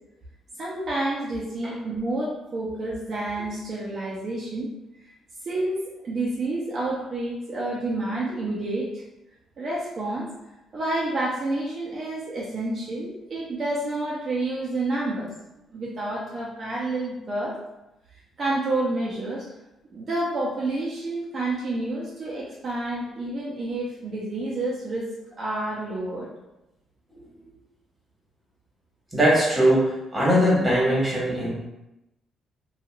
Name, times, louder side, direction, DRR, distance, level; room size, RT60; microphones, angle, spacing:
voice 1, 0.6-4.7 5.5-9.0 9.6-10.3 10.7-15.3 15.7-17.6 18.4-19.5 19.9-25.1 25.4-26.3, right 2 dB, 50° right, -6 dB, 0.6 m, -29 dB
voice 2, 29.1-31.5, equal, 10° right, -5 dB, 1.4 m, -21 dB
2.9 x 2.4 x 2.4 m, 0.93 s
cardioid pair, 90°, 0 cm